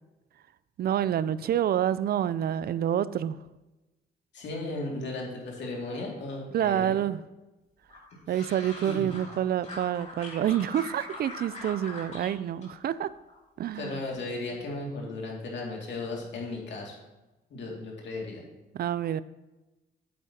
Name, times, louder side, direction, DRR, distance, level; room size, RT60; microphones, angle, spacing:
voice 1, 0.8-3.4 6.5-7.2 8.3-13.1 13.6-14.0 18.7-19.2, right 10 dB, 50° right, 17 dB, 0.4 m, -28 dB
voice 2, 4.3-7.0 8.3-8.4 8.8-9.1 13.7-17.0 17.5-18.4, left 2 dB, 65° left, -1 dB, 2.3 m, -36 dB
sound 1, 7.9-9.4 9.6-12.3 12.6-13.4 13.7-14.1, left 2 dB, 35° left, 2.7 m, -42 dB
8.5 x 8.4 x 2.9 m, 1.1 s
cardioid pair, 90°, 20 cm